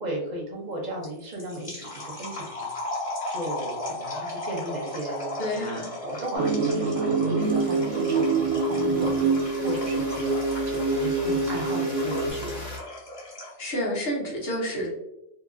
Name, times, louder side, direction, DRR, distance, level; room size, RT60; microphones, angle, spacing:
voice 1, 0.0-2.7 3.3-9.1 9.6-10.3 10.7-12.6, right 1 dB, 45° right, -1 dB, 0.6 m, -35 dB
sound 1, 1.0-13.7, left 2 dB, 25° left, 1.4 m, -36 dB
voice 2, 5.4-5.9 13.6-14.9, equal, 55° left, -3 dB, 1.1 m, -29 dB
sound 2, 6.3-12.3, right 3 dB, 90° right, 1.0 m, -25 dB
sound 3, 7.4-12.8, left 1 dB, 70° left, 1.3 m, -41 dB
2.8 x 2.6 x 2.4 m, 0.87 s
omnidirectional pair, 1.3 m